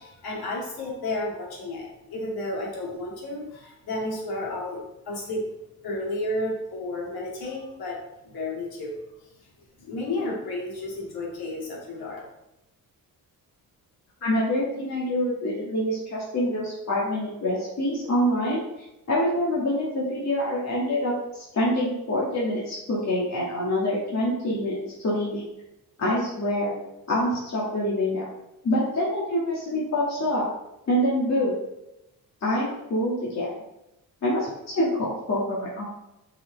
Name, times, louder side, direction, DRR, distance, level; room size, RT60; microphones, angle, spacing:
voice 1, 0.0-5.5 5.8-8.0 8.2-8.9 9.8-12.2, left 2 dB, 80° left, -3 dB, 2.5 m, -32 dB
voice 2, 14.2-18.6 19.1-25.5 26.0-26.8 27.1-28.3 28.6-30.4 30.9-31.5 32.4-33.5 34.2-34.5 34.7-35.8, left 1 dB, 45° left, -6 dB, 2.2 m, -26 dB
6.6 x 5.4 x 4.0 m, 0.89 s
cardioid pair, 105°, 36 cm